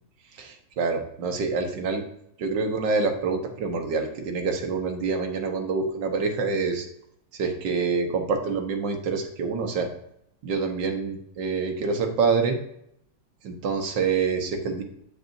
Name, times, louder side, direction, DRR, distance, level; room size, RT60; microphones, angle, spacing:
voice 1, 0.3-2.0 2.4-6.9 7.3-9.9 10.4-12.6 13.4-14.8, right 4 dB, 60° right, 4 dB, 1.6 m, -26 dB
7.3 x 6.6 x 2.6 m, 0.72 s
omnidirectional pair, 2.3 m